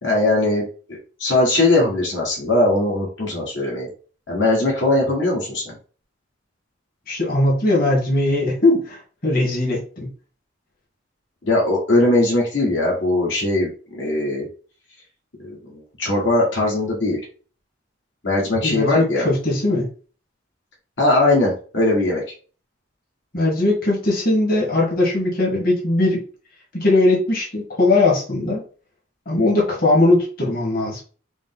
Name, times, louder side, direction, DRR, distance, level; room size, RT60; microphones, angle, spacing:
voice 1, 0.0-3.9 4.3-5.7 11.4-14.5 15.4-17.2 18.2-19.3 21.0-22.2, left 2 dB, 65° left, -4 dB, 1.5 m, -20 dB
voice 2, 7.1-10.1 18.6-19.9 23.3-26.2 26.7-28.6 29.2-31.0, left 2 dB, 45° left, -3 dB, 1.7 m, -19 dB
5.0 x 2.1 x 3.9 m, 0.38 s
head